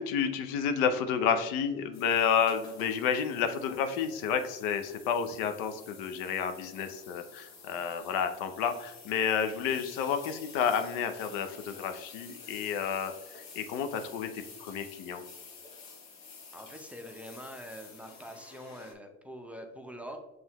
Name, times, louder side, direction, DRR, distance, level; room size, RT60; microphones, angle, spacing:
voice 1, 0.0-13.1 13.5-15.2, left 7 dB, 75° left, 8 dB, 0.6 m, -30 dB
sound 1, 1.9-18.9, left 4 dB, 50° left, 1.2 m, -50 dB
voice 2, 16.5-20.2, equal, 5° right, 3 dB, 0.6 m, -44 dB
5.5 x 3.2 x 2.9 m, 0.99 s
supercardioid pair, 90°, 34 cm